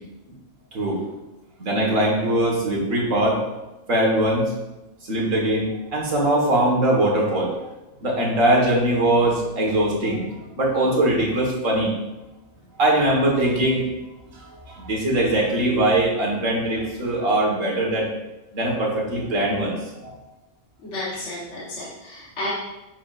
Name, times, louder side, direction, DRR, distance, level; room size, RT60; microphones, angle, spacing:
voice 1, 0.7-1.0 1.6-3.4 3.9-4.5 5.1-7.5 8.0-11.9 12.8-13.9 14.3-18.1 18.5-20.1, right 1 dB, 80° right, -2 dB, 2.0 m, -21 dB
voice 2, 20.8-22.5, left 1 dB, 65° left, -7 dB, 1.6 m, -32 dB
8.4 x 5.9 x 2.5 m, 1.0 s
omnidirectional pair, 1.3 m